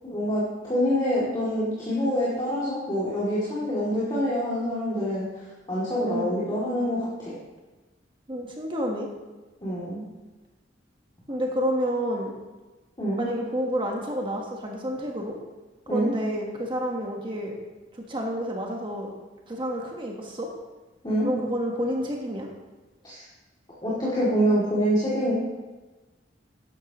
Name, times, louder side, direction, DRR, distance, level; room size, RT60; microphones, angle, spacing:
voice 1, 0.1-5.2 5.7-7.3 9.6-10.0 13.0-13.3 15.9-16.1 21.0-21.3 23.0-23.2 23.8-25.3, equal, 25° left, -8 dB, 2.7 m, -26 dB
voice 2, 6.0-6.4 8.3-9.1 11.3-12.3 13.2-15.3 15.9-17.5 17.9-19.1 19.5-20.5 21.2-22.5, equal, 30° right, 0 dB, 1.4 m, -29 dB
13.0 x 11.0 x 3.1 m, 1.2 s
head